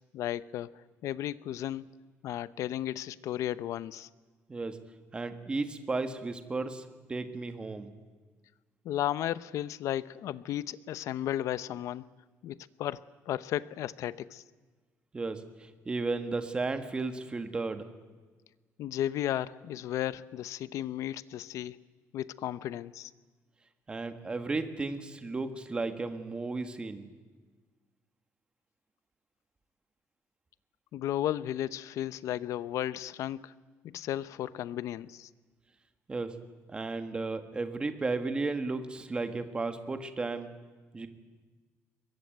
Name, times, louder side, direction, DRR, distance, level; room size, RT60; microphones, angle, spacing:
voice 1, 0.1-1.9 2.2-4.1 8.8-12.1 12.4-13.0 13.3-14.4 18.8-21.8 22.1-23.1 30.9-33.5 33.8-35.3, left 12 dB, 70° left, 17 dB, 0.8 m, -34 dB
voice 2, 5.1-7.9 15.1-17.9 23.9-27.1 36.1-36.4 36.7-40.5 40.9-41.1, right 3 dB, 20° right, 8 dB, 1.6 m, -34 dB
22.5 x 21.5 x 9.3 m, 1.4 s
cardioid pair, 170°, 6 cm